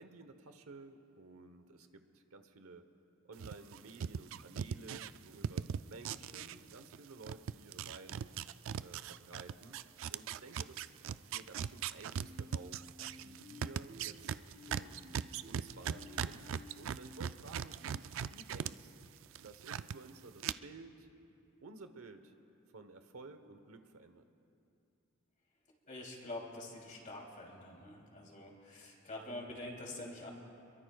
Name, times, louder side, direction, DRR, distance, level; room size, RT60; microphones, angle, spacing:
voice 1, 0.0-2.9 3.2-8.3 8.8-9.8 10.1-12.8 13.2-14.4 14.7-18.9 19.4-21.1 21.6-22.3 22.7-24.2, right 3 dB, 85° right, 8 dB, 1.0 m, -54 dB
sound 1, 3.4-7.0 7.2-18.7 19.0-20.0 20.4-20.5, right 8 dB, 65° right, 0.3 m, -39 dB
sound 2, 12.2-17.3, left 2 dB, 45° right, 0.7 m, -55 dB
voice 2, 25.9-30.3, left 2 dB, 35° left, -1 dB, 2.9 m, -46 dB
26.5 x 22.5 x 2.3 m, 2.7 s
head